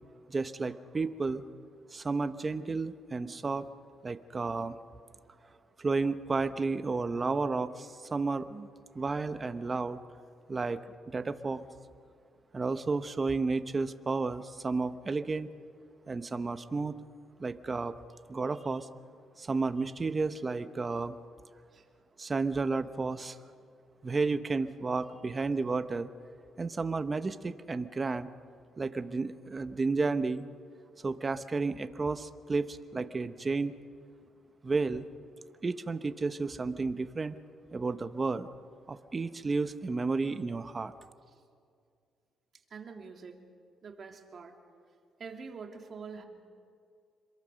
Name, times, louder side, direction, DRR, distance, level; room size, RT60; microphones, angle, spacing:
voice 1, 0.3-1.4 1.9-3.7 4.0-4.8 5.8-8.7 8.9-10.0 10.5-10.8 11.1-11.6 12.5-15.5 16.1-17.0 17.4-17.9 18.3-18.9 19.4-21.1 22.2-23.4 24.0-26.1 26.6-28.3 28.8-30.4 31.0-33.7 34.6-35.0 35.6-37.4 37.7-38.5 38.9-40.9, right 3 dB, 30° right, 11 dB, 1.0 m, -32 dB
voice 2, 42.7-43.4 43.8-44.6 45.2-46.3, right 5 dB, 50° right, 3 dB, 2.8 m, -45 dB
26.5 x 22.5 x 6.4 m, 2.3 s
cardioid pair, 90°, 0 cm